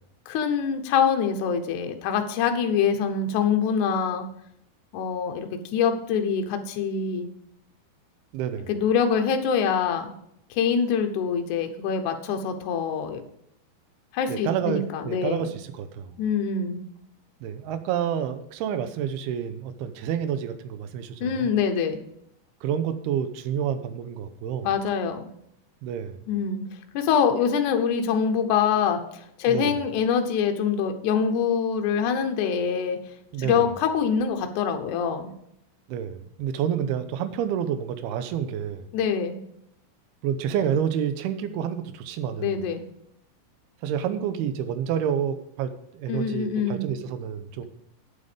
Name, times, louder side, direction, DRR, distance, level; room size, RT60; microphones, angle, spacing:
voice 1, 0.3-4.3 4.9-7.3 8.7-10.1 10.5-13.2 14.1-15.5 16.2-16.8 21.2-22.0 24.6-25.3 26.3-26.6 26.9-29.0 29.4-33.0 33.4-35.3 38.9-39.4 42.4-42.8 46.1-46.8, left 7 dB, 75° left, 5 dB, 1.8 m, -24 dB
voice 2, 8.3-8.7 14.3-16.2 17.4-21.5 22.6-24.7 25.8-26.2 29.5-29.8 33.3-33.7 35.9-38.9 40.2-42.6 43.8-47.6, right 8 dB, 80° right, 10 dB, 2.5 m, -29 dB
8.9 x 8.1 x 5.1 m, 0.74 s
omnidirectional pair, 4.9 m